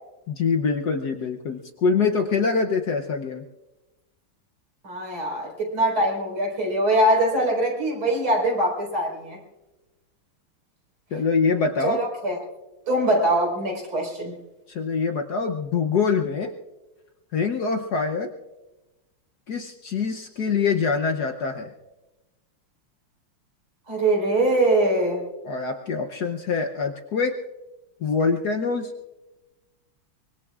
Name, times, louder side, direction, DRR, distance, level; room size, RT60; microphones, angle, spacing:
voice 1, 0.3-3.4 11.1-12.0 14.7-16.5 17.3-18.3 19.5-21.7 25.4-27.4 28.0-28.9, left 5 dB, 60° left, 4 dB, 1.1 m, -24 dB
voice 2, 4.8-9.4 11.8-12.4 12.9-14.3 23.9-25.2, right 1 dB, 70° right, 0 dB, 5.4 m, -22 dB
24.5 x 23.0 x 2.4 m, 1.1 s
omnidirectional pair, 2.4 m